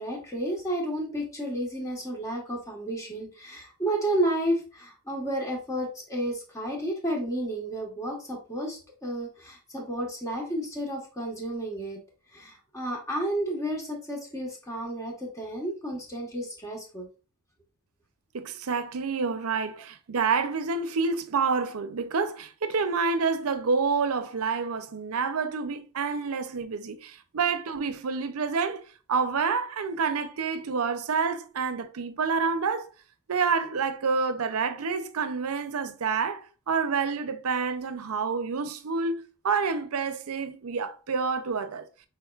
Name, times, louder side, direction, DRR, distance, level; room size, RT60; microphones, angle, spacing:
voice 1, 0.0-12.0 12.3-17.1, right 1 dB, 15° left, 1.3 m, -31 dB
voice 2, 18.3-28.8 29.1-32.9 33.3-41.9, right 5 dB, 75° right, 0.6 m, -28 dB
5.7 x 3.7 x 2.4 m
head